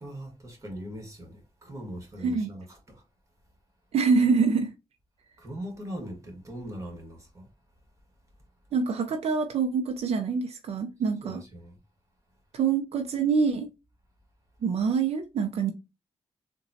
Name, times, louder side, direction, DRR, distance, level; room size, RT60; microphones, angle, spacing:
voice 1, 0.0-3.0 5.4-7.5 11.2-11.7, equal, 30° right, 1.4 m, -40 dB
voice 2, 3.9-4.7 8.7-11.4 12.5-13.7 14.6-15.7, right 5 dB, 75° right, 0.5 m, -25 dB
3.8 x 2.2 x 2.7 m
cardioid pair, 80°, 11 cm